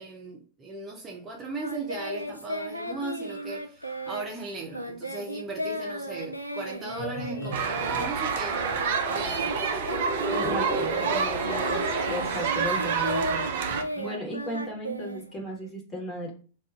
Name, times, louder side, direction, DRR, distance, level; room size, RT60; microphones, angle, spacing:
voice 1, 0.0-8.6 9.1-9.6, right 3 dB, 20° right, 0.6 m, -37 dB
Singing, 1.6-9.6 9.8-15.7, equal, 90° left, 0.3 m, -35 dB
sound 1, 6.9-12.7, equal, 35° left, 1.0 m, -34 dB
sound 2, 7.5-13.8, right 6 dB, 55° right, 0.4 m, -29 dB
voice 2, 10.3-16.3, equal, 20° left, 1.3 m, -36 dB
2.5 x 2.4 x 3.6 m
figure-of-eight pair, 90°, 0 cm